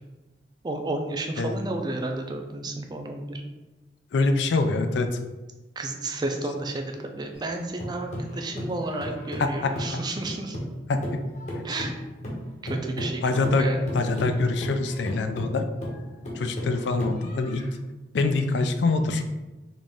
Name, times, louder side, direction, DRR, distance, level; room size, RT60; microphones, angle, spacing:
voice 1, 0.6-3.4 5.8-10.6 11.6-12.0 12.6-13.8, right 2 dB, 25° right, 4 dB, 0.4 m, -32 dB
voice 2, 4.1-5.2 9.4-9.7 10.9-11.0 11.5-11.6 13.2-13.7 13.9-15.6 16.3-17.7 18.1-19.2, left 3 dB, 75° left, 8 dB, 0.4 m, -24 dB
sound 1, 7.3-10.8 11.0-17.7, equal, 40° left, 0.9 m, -34 dB
3.9 x 2.4 x 3.5 m, 1.1 s
head